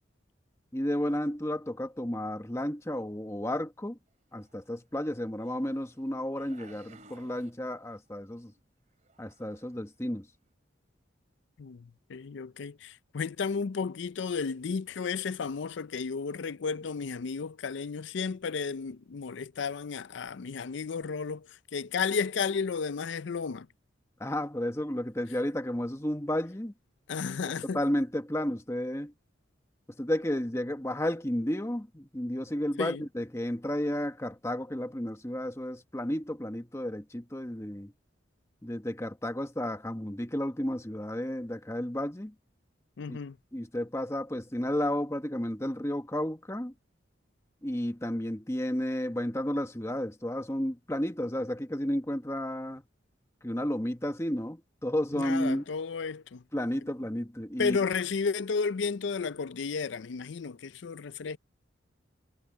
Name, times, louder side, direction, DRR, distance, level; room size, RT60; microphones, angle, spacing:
voice 1, 0.7-4.0 4.3-8.5 9.2-10.3 24.2-26.7 27.6-29.1 30.0-37.9 38.6-42.3 43.1-43.2 43.5-46.7 47.6-52.8 53.4-55.6 56.5-57.8, left 1 dB, 15° left, 1.2 m, -32 dB
sound 1, 4.5-4.6 5.4-6.0 6.4-8.0 8.3-8.6 9.0-9.7 10.4-10.5, right 3 dB, 40° right, 2.8 m, -57 dB
voice 2, 11.6-23.7 27.1-27.8 32.8-33.0 43.0-43.4 55.1-56.4 57.6-61.4, left 5 dB, 70° left, 0.5 m, -33 dB
head